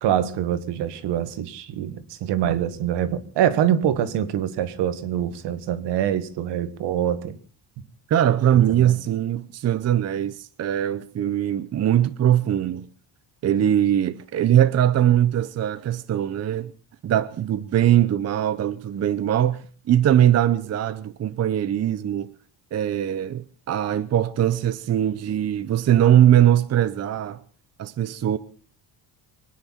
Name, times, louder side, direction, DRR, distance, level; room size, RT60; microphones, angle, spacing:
voice 1, 0.0-7.4 8.5-8.9, right 10 dB, 75° right, 1.8 m, -25 dB
voice 2, 8.1-12.9 13.4-16.7 17.0-22.3 22.7-27.4 27.8-28.4, right 11 dB, 35° right, 0.8 m, -21 dB
24.5 x 10.0 x 5.8 m
cardioid pair, 170°, 43 cm